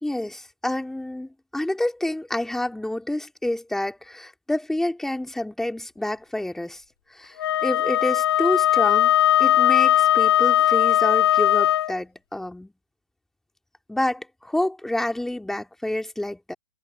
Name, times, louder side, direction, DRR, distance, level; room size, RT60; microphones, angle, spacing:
voice 1, 0.0-6.8 7.1-9.1 9.4-12.7 13.9-16.5, left 1 dB, 5° left, 3.0 m, -28 dB
Wind instrument woodwind instrument, 7.4-11.9, left 12 dB, 55° left, 0.5 m, -19 dB
figure-of-eight pair, 120°, 15 cm